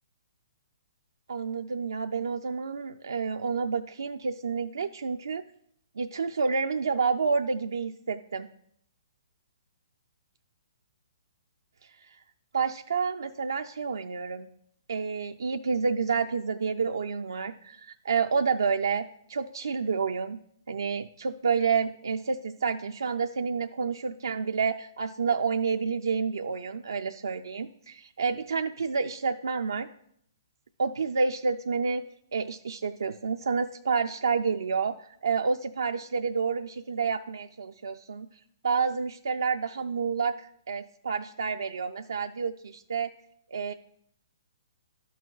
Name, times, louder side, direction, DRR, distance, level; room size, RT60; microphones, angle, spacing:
voice 1, 1.3-5.4 6.0-8.5 12.5-14.5 14.9-20.4 20.7-29.9 30.8-32.0 32.3-38.3 38.6-43.1 43.5-43.7, right 5 dB, 75° right, 5 dB, 0.4 m, -29 dB
12.0 x 6.1 x 2.3 m, 0.69 s
figure-of-eight pair, 125°, 2 cm